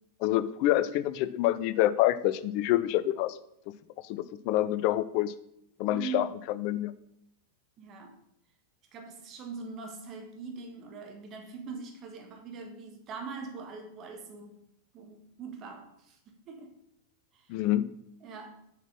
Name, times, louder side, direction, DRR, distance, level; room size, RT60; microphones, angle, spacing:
voice 1, 0.2-3.4 4.1-5.3 5.8-6.9 17.5-17.9, left 14 dB, 45° left, 16 dB, 0.5 m, -27 dB
voice 2, 5.9-6.3 7.8-8.2 8.9-14.6 14.9-16.8 17.3-17.6 18.2-18.5, right 5 dB, 35° right, 4 dB, 1.7 m, -42 dB
6.9 x 6.0 x 5.9 m, 0.76 s
figure-of-eight pair, 90°, 0 cm